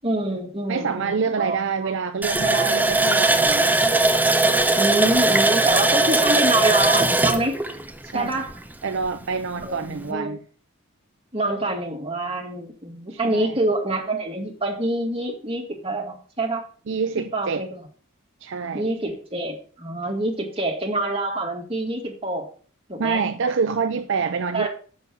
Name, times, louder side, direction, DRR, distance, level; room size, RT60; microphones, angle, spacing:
voice 1, 0.0-1.9 4.4-7.6 8.1-8.5 9.6-10.4 11.3-16.6 17.2-17.8 18.7-22.5 22.9-23.2 24.5-24.7, right 1 dB, 25° right, 2.1 m, -26 dB
voice 2, 0.7-3.8 8.1-8.5 8.8-10.4 13.1-13.5 16.9-17.7 18.4-18.9 23.0-24.7, right 5 dB, 55° right, 0.5 m, -26 dB
Water tap faucet, 2.2-8.7 9.0-9.1 9.6-9.8, right 2 dB, 10° right, 0.7 m, -19 dB
7.0 x 6.4 x 6.8 m
head